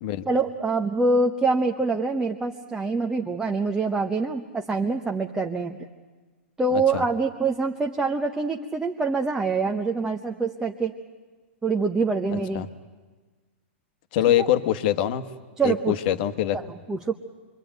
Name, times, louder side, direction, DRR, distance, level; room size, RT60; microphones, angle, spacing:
voice 1, 0.3-5.8 6.6-10.9 11.6-12.7 14.2-14.5 15.6-16.0 16.5-17.1, right 3 dB, 10° right, 2 dB, 0.9 m, -25 dB
voice 2, 6.7-7.0 12.3-12.7 14.1-15.2 15.6-16.6, left 12 dB, 50° left, 10 dB, 1.3 m, -24 dB
26.5 x 23.0 x 9.2 m, 1.3 s
hypercardioid pair, 145°, 7 cm